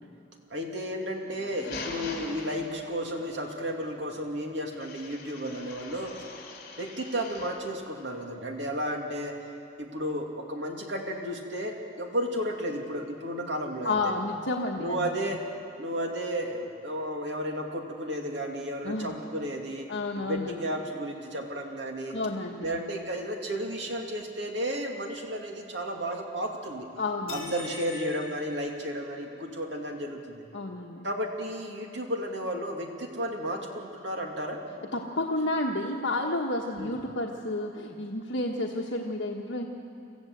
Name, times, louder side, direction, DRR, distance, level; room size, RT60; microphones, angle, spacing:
voice 1, 0.5-6.2 6.8-9.4 9.8-14.1 14.8-15.4 15.8-19.9 20.2-22.2 22.6-26.9 27.3-30.4 31.0-34.6 36.8-37.0, equal, 70° right, 1 dB, 2.6 m, -33 dB
sound 1, 1.2-3.1 4.7-7.7, left 3 dB, 55° left, 3.6 m, -42 dB
voice 2, 13.8-15.1 18.8-19.2 19.9-20.6 22.1-22.8 27.0-27.5 30.5-31.1 34.9-39.7, left 2 dB, 75° left, -1 dB, 1.3 m, -31 dB
sound 2, 27.3-29.4, left 3 dB, 30° left, 3.2 m, -43 dB
26.5 x 14.5 x 8.0 m, 2.7 s
head